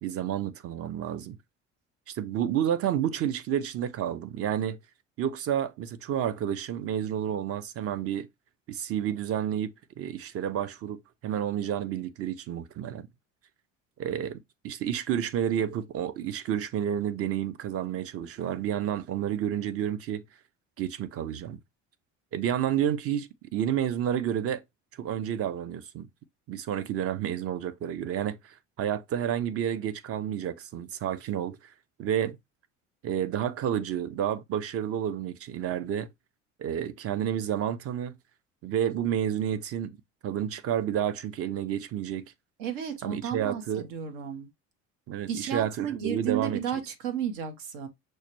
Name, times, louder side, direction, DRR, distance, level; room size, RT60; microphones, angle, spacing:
voice 1, 0.0-1.4 2.1-4.8 5.2-8.3 8.7-13.1 14.0-20.2 20.8-21.6 22.3-24.6 25.0-26.1 26.5-31.7 32.0-32.4 33.0-36.1 36.6-38.1 38.6-40.0 40.2-42.3 43.0-43.9 45.1-46.6, right 10 dB, 45° right, 0.6 m, -30 dB
voice 2, 42.6-44.5 45.3-47.9, right 8 dB, 80° right, 1.0 m, -33 dB
6.3 x 2.2 x 2.9 m
supercardioid pair, 95°, 32 cm